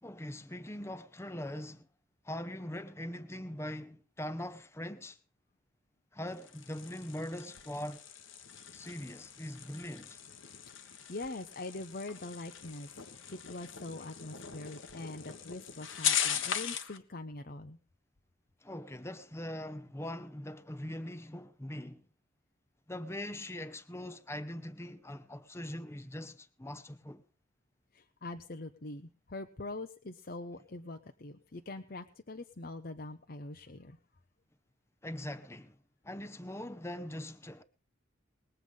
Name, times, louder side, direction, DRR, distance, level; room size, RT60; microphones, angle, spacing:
voice 1, 0.0-1.9 2.2-5.2 6.1-8.0 8.7-10.2 18.6-22.0 22.9-27.2 35.0-35.8 36.0-37.6, left 1 dB, 15° left, 0.9 m, -42 dB
sound 1, 6.3-17.0, left 8 dB, 90° left, 1.4 m, -39 dB
voice 2, 11.1-12.9 13.3-17.8 27.9-34.0, left 2 dB, 50° left, 0.8 m, -43 dB
20.5 x 8.0 x 5.3 m
head